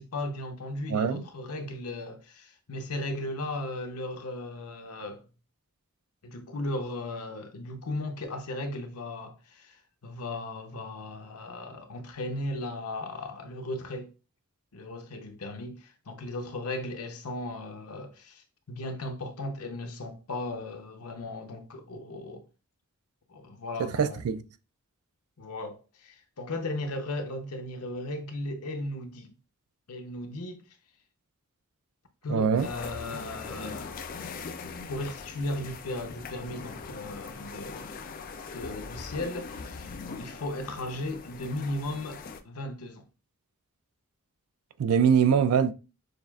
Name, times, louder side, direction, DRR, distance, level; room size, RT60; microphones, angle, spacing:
voice 1, 0.0-5.2 6.2-9.8 10.0-14.1 14.7-22.5 23.3-24.2 25.4-29.3 29.9-30.6 32.2-33.9 34.9-38.0 38.5-42.2 42.4-43.0, left 1 dB, 90° left, 0.7 m, -36 dB
voice 2, 0.9-1.2 23.8-24.4 32.3-32.7 44.8-45.7, right 7 dB, 85° right, 0.4 m, -23 dB
sound 1, 32.6-42.4, left 4 dB, 40° left, 0.3 m, -41 dB
6.4 x 2.4 x 2.3 m
head